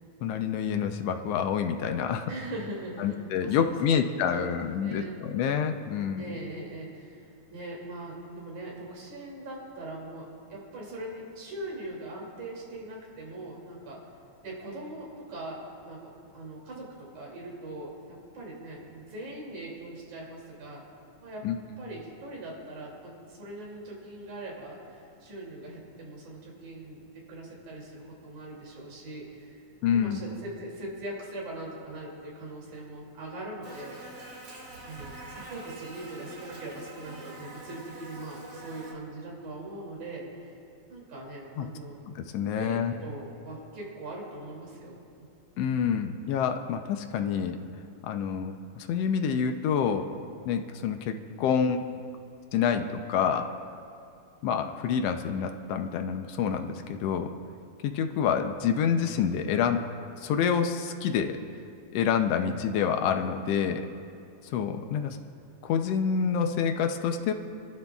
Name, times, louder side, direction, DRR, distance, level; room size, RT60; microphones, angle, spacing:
voice 1, 0.2-2.3 3.0-6.3 21.4-21.6 29.8-30.2 41.6-41.7 42.1-42.9 45.6-47.6 48.0-50.1 50.4-51.8 52.5-53.5 54.4-57.3 57.8-59.8 60.2-61.4 61.9-63.8 64.4-65.2 65.6-67.3, left 7 dB, 80° left, 6 dB, 1.4 m, -27 dB
voice 2, 2.3-5.2 6.2-7.2 7.5-14.0 14.4-20.8 21.2-21.5 21.8-29.6 29.9-34.4 34.8-40.6 40.9-42.0 42.4-45.0, right 1 dB, 70° right, -3 dB, 4.1 m, -41 dB
Buzz, 33.6-38.9, right 2 dB, 50° right, 2.9 m, -45 dB
30.0 x 11.5 x 2.4 m, 2.4 s
omnidirectional pair, 3.6 m